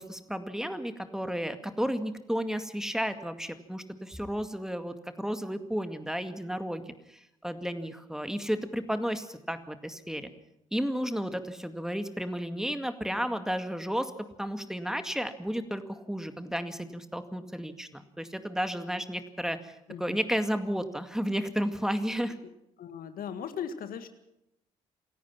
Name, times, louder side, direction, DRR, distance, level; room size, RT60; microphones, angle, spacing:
voice 1, 0.0-10.3 10.7-14.1 14.4-22.3, equal, 5° right, 9 dB, 2.1 m, -33 dB
voice 2, 22.8-24.1, left 7 dB, 60° left, 9 dB, 1.9 m, -38 dB
28.0 x 17.0 x 5.9 m, 0.82 s
hypercardioid pair, 45°, 17 cm